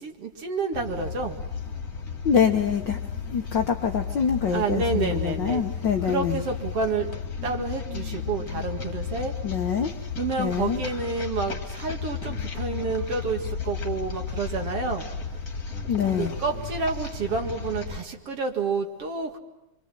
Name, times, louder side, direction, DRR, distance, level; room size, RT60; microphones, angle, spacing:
voice 1, 0.0-1.4 4.5-5.6 6.0-9.3 10.2-15.0 16.2-19.4, right 4 dB, 50° right, 4 dB, 2.7 m, -29 dB
sound 1, 0.7-18.0, left 6 dB, 30° left, 2.5 m, -33 dB
voice 2, 2.2-3.0 3.3-6.4 9.4-9.9 10.4-10.8 15.9-16.3, left 7 dB, 60° left, 4 dB, 1.2 m, -25 dB
27.0 x 24.5 x 7.5 m, 0.95 s
omnidirectional pair, 3.5 m